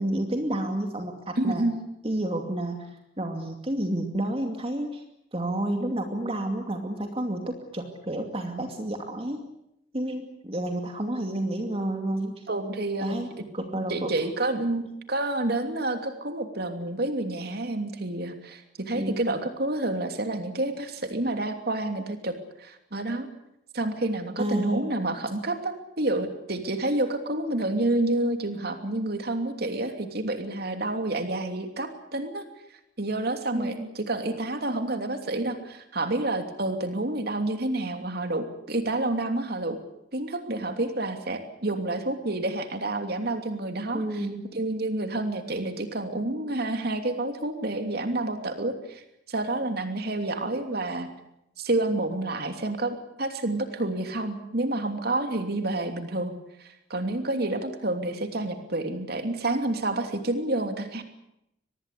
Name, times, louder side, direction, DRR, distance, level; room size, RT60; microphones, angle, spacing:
voice 1, 0.0-1.7 2.0-2.9 3.2-5.0 5.3-9.4 9.9-12.4 13.0-13.3 13.5-14.1 18.9-19.2 24.4-24.9 33.5-33.9 43.9-44.4, right 1 dB, 30° right, 4 dB, 2.5 m, -30 dB
voice 2, 1.4-1.8 12.5-13.1 13.9-22.3 22.6-23.3 23.7-32.4 33.0-39.8 40.1-44.3 44.5-49.0 49.3-51.1 51.6-56.3 56.6-61.0, right 2 dB, 55° right, 6 dB, 3.0 m, -29 dB
24.5 x 20.0 x 8.4 m, 0.80 s
head